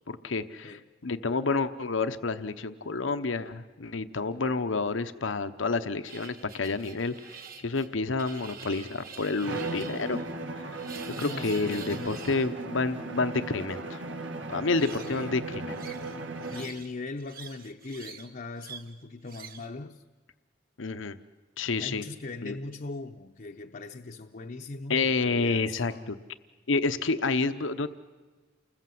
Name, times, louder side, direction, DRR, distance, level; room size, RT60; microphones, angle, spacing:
voice 1, 0.1-7.1 7.6-10.2 10.5-10.6 11.2-14.0 14.5-15.8 20.8-21.2 21.6-22.0 22.4-22.6 24.9-26.2 26.7-27.9, left 3 dB, 75° left, 0.9 m, -29 dB
sound 1, 6.0-12.5 14.6-15.3 15.7-16.9 17.2-18.3 18.6-18.9 19.2-19.7, right 7 dB, 50° right, 1.9 m, -46 dB
Bowed string instrument, 9.4-16.8, right 2 dB, 70° right, 1.9 m, -37 dB
voice 2, 11.1-12.3 15.1-15.4 16.5-20.0 21.8-26.1, left 3 dB, 45° left, 0.8 m, -40 dB
29.5 x 21.0 x 7.8 m
head